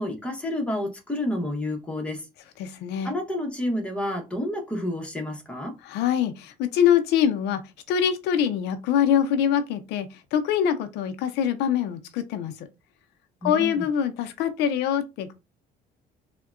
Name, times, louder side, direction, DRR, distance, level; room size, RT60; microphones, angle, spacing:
voice 1, 0.0-2.3 3.0-5.8 13.4-13.8, left 1 dB, 5° left, 0.9 m, -29 dB
voice 2, 2.6-3.1 5.8-7.6 7.9-12.5 13.4-15.3, left 9 dB, 85° left, 0.5 m, -24 dB
3.5 x 2.1 x 2.4 m
cardioid pair, 110°, 17 cm